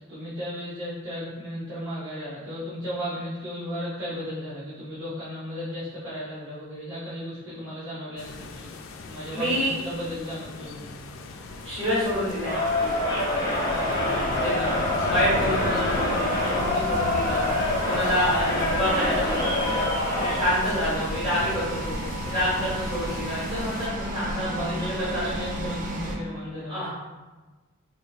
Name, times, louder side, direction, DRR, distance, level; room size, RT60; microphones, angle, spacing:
voice 1, 0.1-11.0 13.6-14.2 14.4-14.8 24.3-26.9, equal, 80° right, -13 dB, 1.1 m, -35 dB
sound 1, 8.2-23.9, left 3 dB, 80° left, 0.3 m, -38 dB
voice 2, 9.3-9.7 11.6-12.6 14.4-14.7 15.0-17.4 17.8-19.8 20.2-21.9 22.3-25.2 26.7-26.9, equal, 25° right, -10 dB, 1.4 m, -27 dB
sound 2, 11.4-26.2, right 1 dB, 40° right, 0.4 m, -34 dB
Crowd, 12.4-20.5, left 2 dB, 20° left, 0.6 m, -26 dB
4.3 x 2.3 x 3.2 m, 1.2 s
head